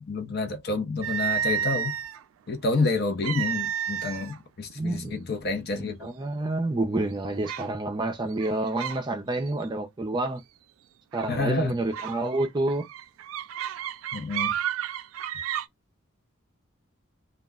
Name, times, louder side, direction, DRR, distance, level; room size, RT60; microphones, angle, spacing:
voice 1, 0.0-2.0 2.5-6.1 11.3-11.7 14.1-14.5, left 3 dB, 55° left, 0.6 m, -29 dB
sound 1, 1.0-2.2 3.2-4.4 4.7-5.0 5.6-5.7 6.2-6.7 7.4-7.7 8.3-9.0 9.3-9.7 11.1-11.4 11.9-15.7, right 9 dB, 90° right, 0.3 m, -31 dB
voice 2, 4.8-5.1 6.0-10.4 11.1-12.9, right 2 dB, 20° right, 0.4 m, -28 dB
2.3 x 2.1 x 3.5 m
head